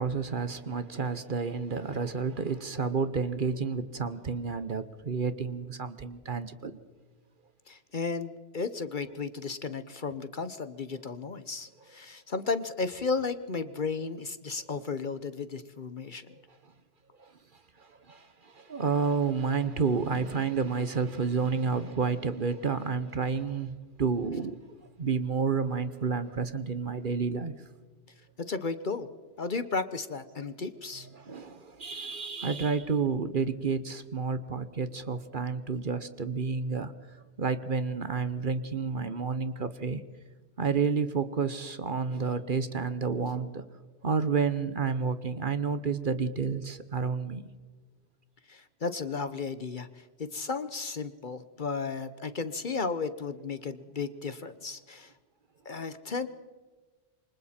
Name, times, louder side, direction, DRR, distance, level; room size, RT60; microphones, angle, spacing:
voice 1, 0.0-6.8 14.7-14.8 17.2-17.3 17.8-24.6 25.0-27.5 31.1-36.9 37.4-40.0 40.6-43.6 44.0-47.4, right 5 dB, 45° right, 12 dB, 1.1 m, -30 dB
voice 2, 7.7-16.3 28.5-29.1 29.4-31.1 48.5-55.1 55.6-56.3, left 4 dB, 45° left, 12 dB, 1.0 m, -34 dB
27.5 x 24.5 x 4.4 m, 1.3 s
omnidirectional pair, 1.2 m